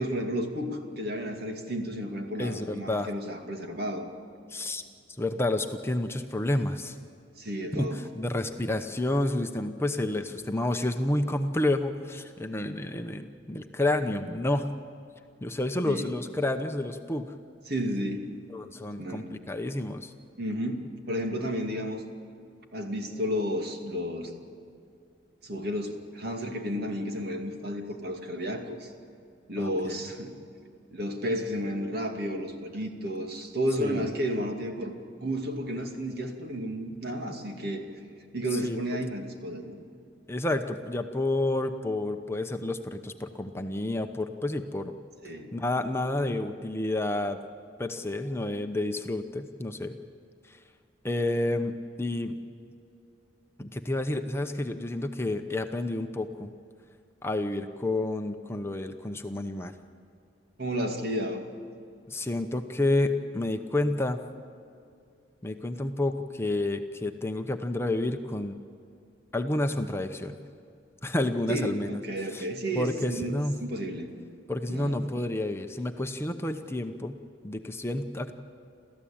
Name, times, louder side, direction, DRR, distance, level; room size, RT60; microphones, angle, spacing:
voice 1, 0.0-4.1 7.4-8.0 15.8-16.1 17.7-18.3 19.0-19.3 20.4-22.0 22.7-24.3 25.4-28.9 29.5-30.4 30.9-37.9 38.3-39.8 45.2-45.5 60.6-61.5 71.5-74.1 74.7-74.9, equal, 55° right, 3 dB, 2.5 m, -32 dB
voice 2, 2.4-3.1 4.5-4.8 5.2-7.0 7.7-14.7 15.4-17.3 18.5-20.1 29.6-30.0 33.8-34.1 38.5-38.8 40.3-44.9 45.5-47.4 47.8-49.9 50.4-50.6 51.0-51.7 52.0-52.4 53.6-56.5 57.2-59.7 62.1-64.2 65.4-68.5 69.3-70.4 71.0-71.9 72.3-72.5 72.7-73.6 74.5-77.2 77.4-78.4, left 1 dB, 15° left, 6 dB, 0.9 m, -30 dB
29.0 x 14.5 x 8.7 m, 2.5 s
head